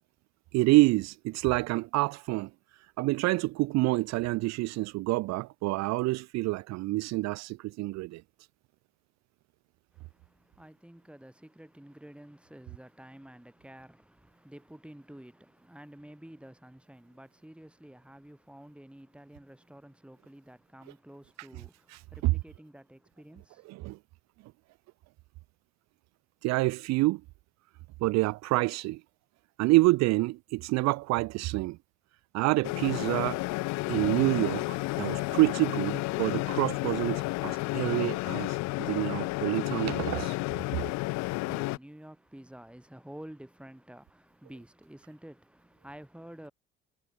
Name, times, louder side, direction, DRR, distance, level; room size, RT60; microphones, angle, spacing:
voice 1, 0.5-8.2 21.9-22.3 23.7-24.0 26.4-27.2 28.0-29.0 29.6-31.8 32.3-33.4 33.9-40.4, right 21 dB, 55° right, 0.7 m, -27 dB
voice 2, 9.9-23.7 41.1-46.5, right 1 dB, 5° right, 7.5 m, -50 dB
sound 1, 32.6-41.8, left 22 dB, 55° left, 0.7 m, -31 dB
hypercardioid pair, 65°, 33 cm